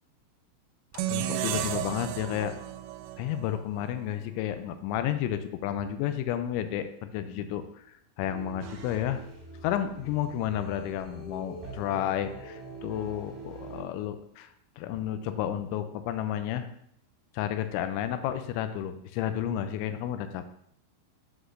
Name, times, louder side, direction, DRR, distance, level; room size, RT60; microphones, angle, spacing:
sound 1, 0.9-4.1, right 13 dB, 85° right, 3.1 m, -33 dB
voice 1, 1.1-2.6 3.2-9.2 9.6-14.5 14.8-16.7 17.3-20.5, left 10 dB, 85° left, 9 dB, 2.7 m, -31 dB
sound 2, 8.2-13.8, right 2 dB, 15° right, 2.1 m, -44 dB
sound 3, 8.6-9.7, right 4 dB, 65° right, 2.3 m, -54 dB
9.7 x 8.2 x 2.5 m, 0.70 s
omnidirectional pair, 5.8 m